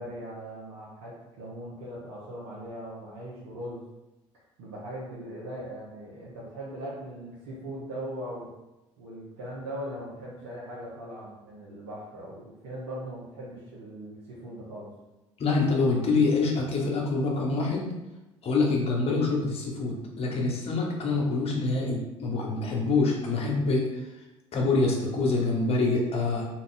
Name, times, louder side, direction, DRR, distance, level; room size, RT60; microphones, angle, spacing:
voice 1, 0.0-3.8 4.6-8.5 9.0-14.9, right 1 dB, 70° right, -7 dB, 0.8 m, -39 dB
voice 2, 15.4-17.9 18.4-24.1 24.5-26.5, left 3 dB, 40° left, -1 dB, 0.9 m, -26 dB
2.5 x 2.3 x 3.7 m, 1.0 s
hypercardioid pair, 65°, 15 cm